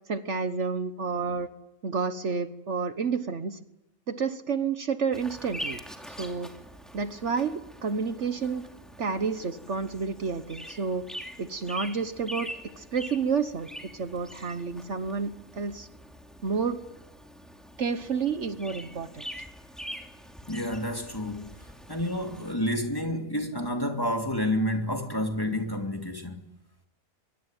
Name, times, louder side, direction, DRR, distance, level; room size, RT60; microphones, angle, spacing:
voice 1, 0.1-1.5 1.8-3.6 4.1-5.8 6.1-6.5 6.9-8.7 9.0-11.0 11.4-12.5 12.8-15.9 16.4-16.8 17.8-19.2, right 5 dB, 60° right, 1.5 m, -30 dB
Bird vocalization bird call bird song, 5.1-22.6, equal, ahead, 2.8 m, -44 dB
voice 2, 20.5-21.5 21.9-26.4, left 1 dB, 15° left, 2.7 m, -29 dB
24.5 x 22.5 x 9.1 m
omnidirectional pair, 1.4 m